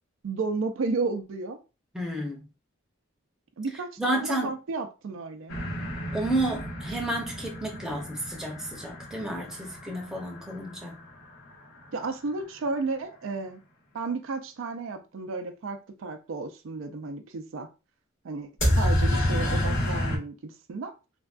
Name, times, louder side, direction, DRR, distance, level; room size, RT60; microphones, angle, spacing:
voice 1, 0.2-1.6 3.6-5.5 11.9-13.6 13.9-17.7 18.2-20.9, right 3 dB, 75° right, 0.4 m, -33 dB
voice 2, 1.9-2.5 4.0-4.6 6.1-11.0, right 1 dB, 5° right, 0.7 m, -31 dB
sound 1, 5.5-11.2 18.6-20.2, left 1 dB, 65° left, 1.5 m, -29 dB
3.3 x 2.2 x 2.4 m
head